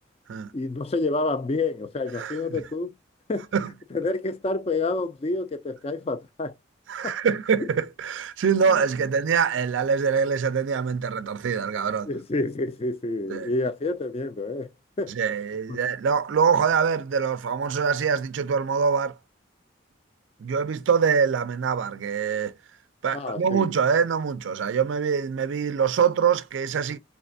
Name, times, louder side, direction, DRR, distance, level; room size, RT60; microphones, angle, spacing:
voice 1, 0.5-2.9 3.3-3.5 3.9-6.5 7.0-7.2 7.6-7.7 8.7-8.8 12.1-14.7 15.0-15.2 15.7-15.8 23.1-23.7, left 2 dB, 30° left, 0.4 m, -28 dB
voice 2, 2.2-2.6 3.5-3.7 6.9-12.1 13.3-13.5 15.2-19.2 20.4-22.5 23.0-27.0, right 6 dB, 70° right, 0.4 m, -24 dB
3.6 x 3.2 x 2.6 m
head